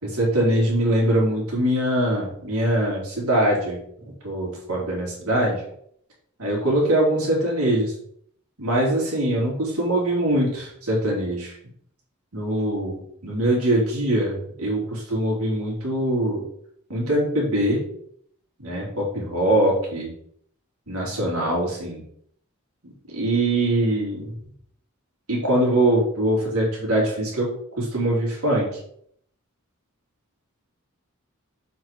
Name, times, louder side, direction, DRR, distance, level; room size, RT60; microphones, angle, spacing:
voice 1, 0.0-3.8 4.2-5.6 6.4-7.9 8.6-11.6 12.3-16.4 16.9-17.8 18.6-20.1 20.9-22.0 22.8-24.3 25.3-28.7, right 1 dB, 80° right, -3 dB, 3.6 m, -23 dB
7.7 x 4.9 x 4.7 m, 0.67 s
head